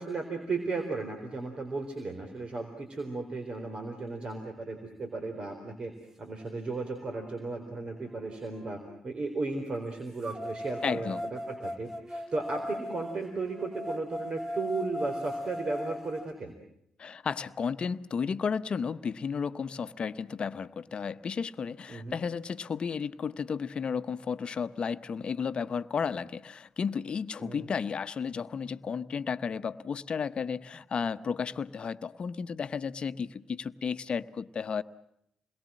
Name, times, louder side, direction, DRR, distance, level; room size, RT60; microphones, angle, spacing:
voice 1, 0.0-5.9 6.2-16.5 21.9-22.2 27.4-27.7, right 3 dB, 50° right, 5 dB, 3.9 m, -35 dB
sound 1, 6.4-6.5 7.1-9.0 10.2-16.2, left 1 dB, 20° right, 2.1 m, -39 dB
voice 2, 10.8-11.3 17.0-34.8, left 6 dB, 55° left, 13 dB, 1.0 m, -33 dB
28.5 x 22.0 x 7.5 m, 0.76 s
hypercardioid pair, 45°, 2 cm